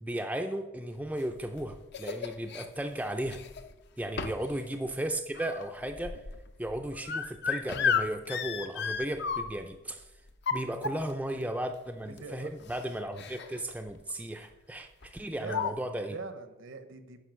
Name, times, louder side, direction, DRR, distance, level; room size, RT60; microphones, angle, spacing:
voice 1, 0.0-3.4 4.0-6.2 6.6-10.0 10.5-16.2, right 1 dB, 5° right, 5 dB, 0.4 m, -35 dB
sound 1, 1.2-2.7 3.2-3.7 4.2-4.5 4.9-9.8 10.3-11.3 12.2-12.3 12.6-12.8 13.1-13.6 13.9-14.1 15.0-15.1 15.5-15.7, left 6 dB, 55° left, 0.6 m, -33 dB
voice 2, 12.2-12.5 15.4-15.8 16.1-17.3, right 4 dB, 65° right, 9 dB, 0.9 m, -42 dB
10.0 x 5.1 x 6.2 m, 1.0 s
head